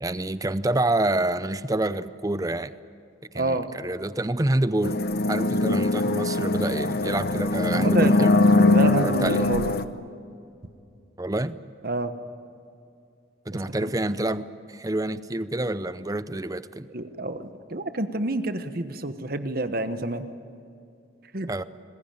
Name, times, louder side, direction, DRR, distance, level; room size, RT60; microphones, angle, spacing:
voice 1, 0.0-2.7 3.3-5.0 5.3-8.4 9.0-9.5 11.2-11.6 13.5-16.9 21.5-21.6, right 1 dB, 15° right, 14 dB, 0.6 m, -27 dB
voice 2, 3.3-3.7 7.7-8.3 8.6-9.7 11.8-12.1 13.8-13.9 16.9-20.2 21.3-21.5, right 2 dB, 50° right, 9 dB, 1.1 m, -28 dB
sound 1, 4.8-9.8, left 2 dB, 50° left, 0.9 m, -21 dB
27.0 x 20.5 x 9.1 m, 2.5 s
head